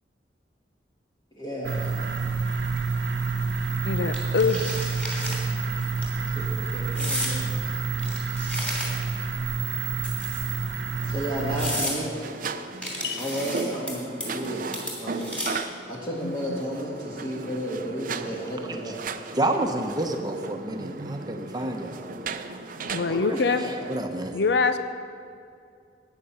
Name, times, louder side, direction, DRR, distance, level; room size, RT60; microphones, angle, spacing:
voice 1, 1.3-2.2 6.1-7.8 11.0-12.1 13.2-14.7 15.0-15.3 15.8-19.0 22.8-23.7, equal, 25° left, -4 dB, 1.5 m, -33 dB
sound 1, 1.6-11.9, right 4 dB, 80° right, 1.0 m, -28 dB
voice 2, 3.8-4.7 13.0-13.3 16.2-16.6 22.8-23.6 24.3-24.8, left 4 dB, 65° left, 10 dB, 0.6 m, -24 dB
sound 2, 4.1-5.4 5.8-6.0 6.9-7.4 8.0-9.2 10.0-10.6 11.1-11.2 11.5-12.0 12.8-13.9 14.2-14.5 14.7-15.7, equal, 5° left, 2.9 m, -32 dB
sound 3, 11.4-24.0, right 4 dB, 50° right, 0.6 m, -37 dB
voice 3, 19.4-22.1 23.1-23.4 23.9-24.4, right 1 dB, 20° right, 4 dB, 0.9 m, -29 dB
13.5 x 9.2 x 5.7 m, 2.3 s
head